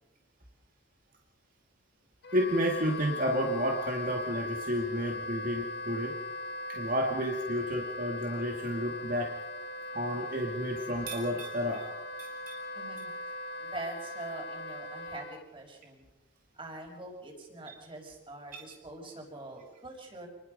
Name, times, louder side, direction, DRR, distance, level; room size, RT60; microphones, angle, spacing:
Wind instrument woodwind instrument, 2.2-15.4, left 2 dB, 55° left, 1.6 m, -40 dB
voice 1, 2.3-6.2 6.7-9.3 9.9-11.9 12.2-12.6 18.5-18.6, equal, 45° right, 1 dB, 2.3 m, -31 dB
voice 2, 12.7-13.1 13.6-16.1 16.5-20.3, right 2 dB, 25° right, 2 dB, 5.6 m, -44 dB
28.0 x 21.0 x 5.4 m, 1.0 s
head